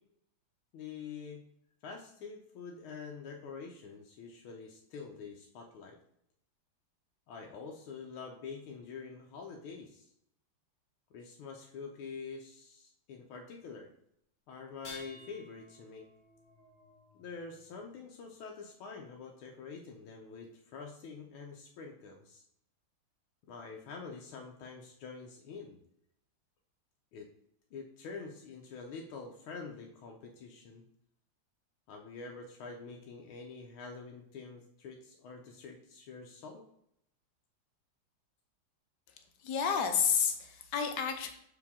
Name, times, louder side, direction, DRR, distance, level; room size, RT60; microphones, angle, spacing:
voice 1, 0.7-1.4 1.8-6.0 7.3-10.1 11.1-13.9 14.5-16.1 17.2-22.4 23.5-25.8 27.1-27.3 27.7-30.8 31.9-36.6, left 5 dB, 85° left, 1 dB, 1.6 m, -46 dB
sound 1, 14.7-17.9 19.5-19.6 20.4-20.5, left 2 dB, 40° left, 1.6 m, -53 dB
voice 2, 39.4-41.3, left 7 dB, 65° left, 6 dB, 1.2 m, -30 dB
6.3 x 4.8 x 3.5 m, 0.74 s
omnidirectional pair, 2.2 m